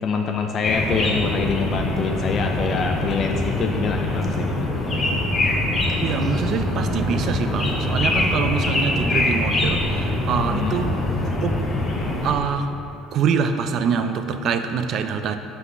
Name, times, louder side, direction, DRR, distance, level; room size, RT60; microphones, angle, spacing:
voice 1, 0.0-4.7 10.5-10.8, left 5 dB, 40° left, 3 dB, 0.4 m, -25 dB
sound 1, 0.6-12.3, left 1 dB, 20° left, 0.8 m, -23 dB
voice 2, 6.0-11.0 11.4-11.6 12.2-12.8 13.1-15.4, right 6 dB, 50° right, 8 dB, 0.4 m, -25 dB
5.5 x 4.0 x 6.0 m, 2.7 s
cardioid pair, 125°, 0 cm